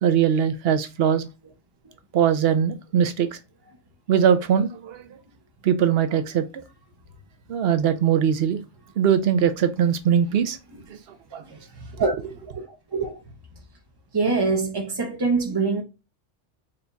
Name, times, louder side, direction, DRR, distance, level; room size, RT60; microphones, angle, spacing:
voice 1, 0.0-1.3 2.1-3.4 4.1-5.1 5.6-6.6 7.5-8.6 9.0-10.6 10.9-11.0 11.3-11.4, right 8 dB, 65° right, 0.7 m, -21 dB
voice 2, 11.5-12.1 12.6-13.2 14.1-15.8, right 4 dB, 35° right, 0.4 m, -25 dB
4.2 x 2.3 x 3.9 m
omnidirectional pair, 1.3 m